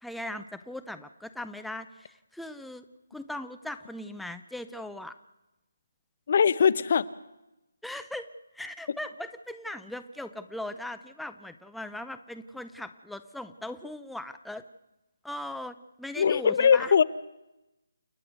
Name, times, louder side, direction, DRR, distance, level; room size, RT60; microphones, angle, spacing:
voice 1, 0.0-2.8 3.1-5.1 7.8-8.3 8.5-14.6 15.2-16.9, left 1 dB, ahead, 9 dB, 0.6 m, -39 dB
voice 2, 6.3-7.1 16.2-17.0, left 7 dB, 50° left, 18 dB, 0.8 m, -21 dB
29.0 x 9.9 x 9.4 m, 0.95 s
figure-of-eight pair, 150°, 0 cm